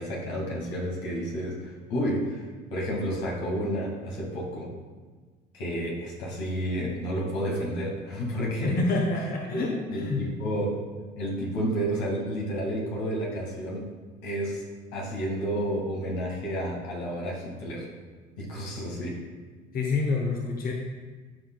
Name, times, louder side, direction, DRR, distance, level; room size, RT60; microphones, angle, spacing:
voice 1, 0.0-2.4 2.7-4.7 5.5-8.8 9.5-9.6 9.9-10.8 11.2-13.9 14.2-14.6 14.9-17.9 18.4-19.2, equal, 85° left, -3 dB, 2.0 m, -30 dB
voice 2, 8.6-10.2 19.7-20.7, left 3 dB, 45° left, 0 dB, 1.0 m, -27 dB
11.5 x 4.8 x 2.3 m, 1.4 s
supercardioid pair, 85°, 21 cm